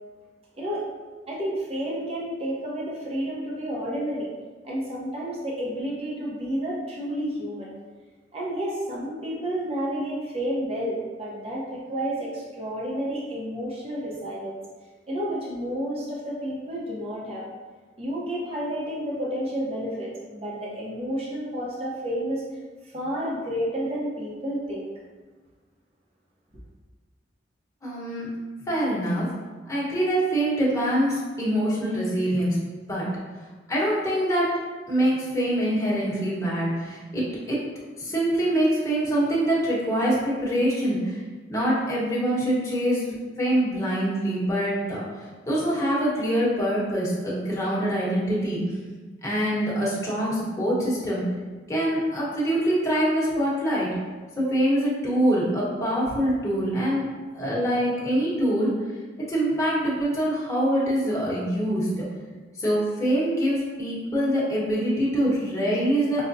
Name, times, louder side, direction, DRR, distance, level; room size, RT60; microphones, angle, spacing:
voice 1, 1.3-4.3 4.6-7.7 8.3-14.6 15.1-17.5 18.0-22.4 22.8-24.9, equal, 35° right, -5 dB, 0.7 m, -30 dB
voice 2, 27.8-28.3 28.7-29.3 29.7-32.6 32.9-33.0 33.7-34.5 34.9-37.6 38.0-41.2 41.5-45.0 45.5-48.6 49.2-51.2 51.7-53.9 54.4-57.0 57.3-58.7 59.3-61.9 62.6-66.2, right 1 dB, 15° left, -8 dB, 1.0 m, -24 dB
5.4 x 2.1 x 2.6 m, 1.3 s
head